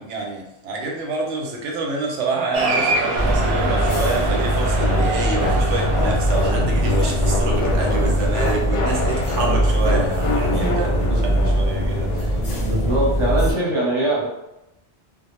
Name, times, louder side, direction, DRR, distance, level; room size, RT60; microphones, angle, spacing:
voice 1, 0.0-12.3, right 3 dB, 90° right, 0 dB, 0.9 m, -27 dB
Cheering, 2.5-7.3, right 2 dB, 65° right, 0.7 m, -25 dB
sound 1, 3.2-13.5, equal, 40° left, 0.7 m, -21 dB
sound 2, 4.8-12.2, left 2 dB, 85° left, 0.9 m, -26 dB
voice 2, 12.6-14.3, right 1 dB, 30° right, -6 dB, 0.7 m, -22 dB
2.1 x 2.0 x 3.0 m, 0.89 s
omnidirectional pair, 1.2 m